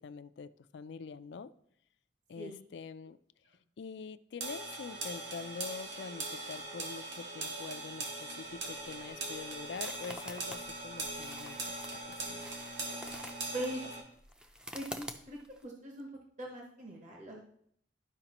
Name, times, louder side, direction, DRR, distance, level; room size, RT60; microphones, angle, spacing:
voice 1, 0.0-1.5 2.3-3.2 3.8-11.6 12.1-12.4, left 5 dB, 65° left, 13 dB, 0.4 m, -45 dB
sound 1, 4.4-14.0, right 2 dB, 70° right, 1.7 m, -41 dB
sound 2, 8.5-15.6, equal, 5° right, 0.4 m, -49 dB
voice 2, 14.7-16.1 16.4-17.4, right 1 dB, 40° right, -1 dB, 1.0 m, -41 dB
12.0 x 4.9 x 3.0 m, 0.68 s
head